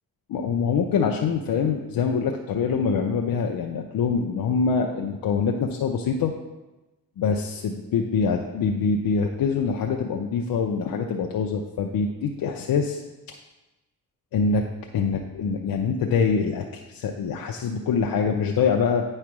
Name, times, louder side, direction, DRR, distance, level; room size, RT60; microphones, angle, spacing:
voice 1, 0.3-6.3 7.2-13.0 14.3-14.7 14.9-19.0, left 5 dB, 80° left, 2 dB, 0.6 m, -24 dB
9.3 x 3.3 x 6.0 m, 1.1 s
cardioid pair, 75°, 35 cm